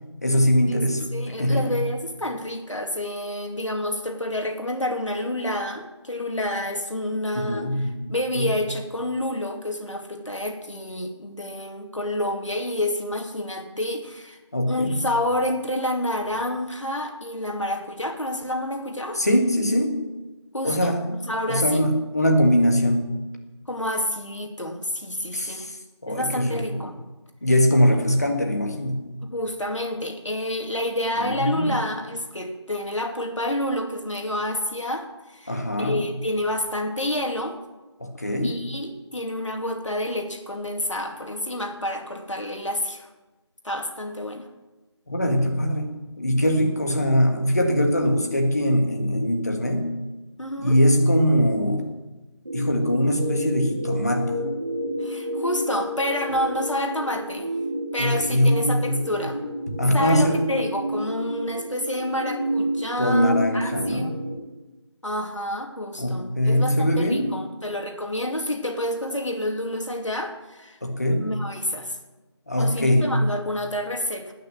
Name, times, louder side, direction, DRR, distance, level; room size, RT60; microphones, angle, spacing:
voice 1, 0.2-1.8 7.3-7.9 8.3-8.5 14.5-15.0 19.1-20.0 20.6-21.1 21.5-23.2 25.3-25.8 26.0-26.8 27.4-29.1 31.2-31.8 35.5-36.1 38.0-38.6 45.1-49.9 50.6-51.9 52.5-54.4 58.0-59.1 59.8-60.4 63.0-64.1 66.0-67.3 70.8-71.4 72.5-73.2, equal, 35° left, 3 dB, 1.8 m, -22 dB
voice 2, 1.1-7.7 8.1-14.4 14.7-19.2 20.5-21.8 23.7-25.7 26.1-27.0 29.2-37.6 38.4-43.1 43.6-44.5 50.4-50.8 55.0-57.5 57.9-59.4 59.9-64.2 65.0-70.8 71.1-72.0 72.6-74.3, left 1 dB, 85° left, 3 dB, 2.7 m, -29 dB
sound 1, 52.5-64.3, right 1 dB, 40° right, 2.3 m, -30 dB
19.5 x 6.5 x 7.7 m, 1.1 s
figure-of-eight pair, 175°, 15 cm